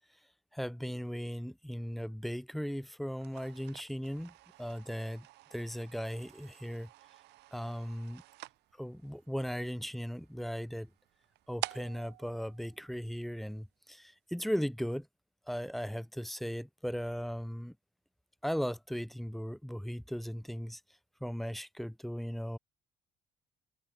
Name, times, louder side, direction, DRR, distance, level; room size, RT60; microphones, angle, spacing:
voice 1, 0.5-6.9 7.5-8.2 8.8-10.9 11.5-15.1 15.5-17.7 18.4-20.8 21.2-22.6, equal, ahead, 0.4 m, -37 dB
sound 1, 3.1-13.5, right 18 dB, 85° right, 1.3 m, -49 dB
cardioid pair, 110°, 17 cm